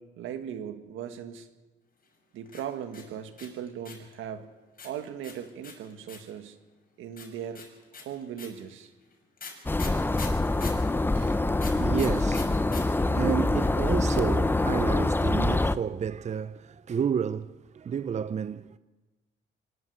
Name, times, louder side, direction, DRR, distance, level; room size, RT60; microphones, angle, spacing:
voice 1, 0.0-1.5 2.3-4.5 4.8-6.6 7.0-7.6 8.0-8.9 11.1-11.4, right 9 dB, 90° right, 1.9 m, -38 dB
sound 1, 2.5-4.1 4.8-6.4 7.2-10.9 11.6-12.8 13.1-13.2 13.4-13.8, left 5 dB, 45° left, 6.4 m, -42 dB
sound 2, 9.7-15.8, left 2 dB, 10° left, 0.7 m, -25 dB
voice 2, 11.7-18.8, right 7 dB, 35° right, 0.6 m, -31 dB
24.5 x 12.5 x 8.4 m
cardioid pair, 90°, 20 cm